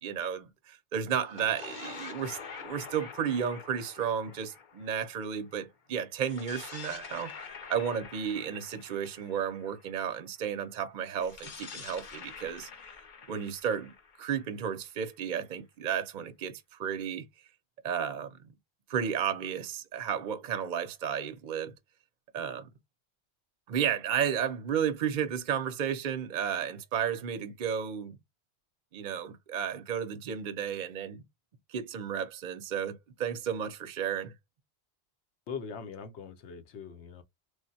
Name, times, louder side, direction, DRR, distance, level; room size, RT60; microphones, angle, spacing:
voice 1, 0.0-7.3 7.7-12.7 13.3-17.3 17.8-18.4 18.9-21.7 22.3-22.7 23.7-28.2 28.9-31.2 31.7-34.3, right 8 dB, 55° right, 0.6 m, -33 dB
sound 1, 1.2-5.6 6.2-10.1 11.2-15.0, left 5 dB, 50° left, 0.7 m, -46 dB
voice 2, 35.5-37.2, left 6 dB, 85° left, 1.0 m, -41 dB
3.3 x 2.1 x 2.6 m
omnidirectional pair, 1.1 m